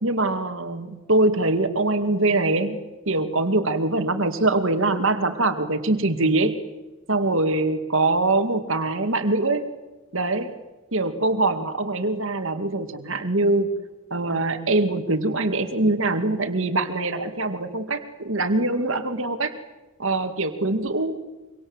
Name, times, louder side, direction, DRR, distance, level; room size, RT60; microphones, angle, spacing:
voice 1, 0.0-2.8 3.1-6.6 7.1-9.7 10.1-10.5 10.9-13.7 14.1-19.5 20.0-21.3, right 2 dB, 60° right, 9 dB, 2.3 m, -23 dB
25.5 x 25.5 x 8.0 m, 1.1 s
head